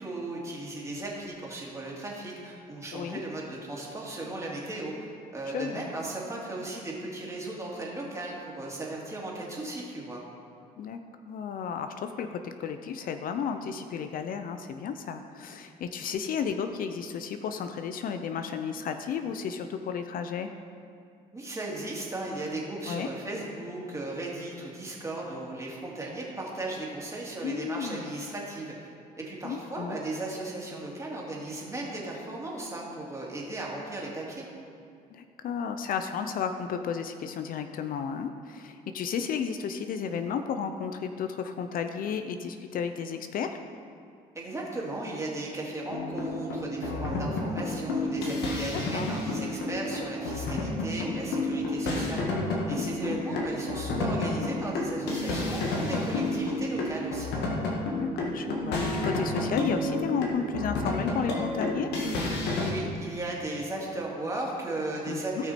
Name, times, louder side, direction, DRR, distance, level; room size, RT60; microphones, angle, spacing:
voice 1, 0.0-4.9 5.3-10.2 21.3-28.9 29.2-34.5 44.3-52.3 52.7-57.3 62.6-65.5, right 2 dB, 15° right, -3 dB, 2.5 m, -36 dB
voice 2, 5.5-5.9 10.8-20.5 22.9-23.1 27.4-28.0 29.4-30.0 35.1-43.6 48.7-49.1 52.8-53.5 58.0-61.9 65.1-65.4, left 7 dB, 55° left, 8 dB, 0.6 m, -33 dB
sound 1, 45.9-62.7, left 2 dB, 80° left, 1.7 m, -30 dB
17.0 x 6.0 x 4.3 m, 2.3 s
cardioid pair, 110°, 17 cm